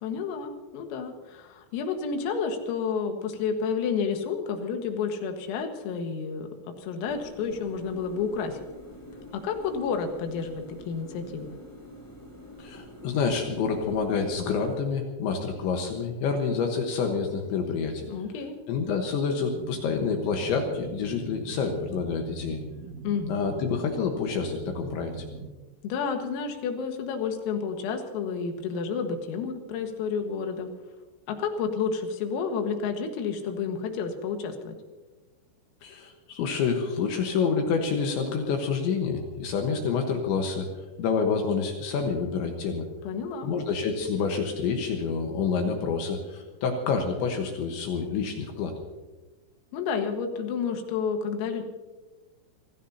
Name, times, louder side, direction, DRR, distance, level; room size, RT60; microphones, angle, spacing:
voice 1, 0.0-6.5 6.8-8.6 9.3-11.6 18.1-18.6 23.0-23.4 25.8-30.7 31.3-34.8 43.1-43.5 49.7-51.6, left 6 dB, 90° left, 5 dB, 4.3 m, -30 dB
sound 1, 7.1-14.8, equal, 5° left, 2.7 m, -47 dB
voice 2, 12.6-18.1 18.7-22.6 23.3-25.2 35.8-40.7 41.0-42.9 43.4-48.7, left 5 dB, 70° left, 3 dB, 3.4 m, -28 dB
sound 2, 19.5-25.5, right 4 dB, 60° right, 2.0 m, -41 dB
26.5 x 17.0 x 2.8 m, 1.2 s
omnidirectional pair, 5.9 m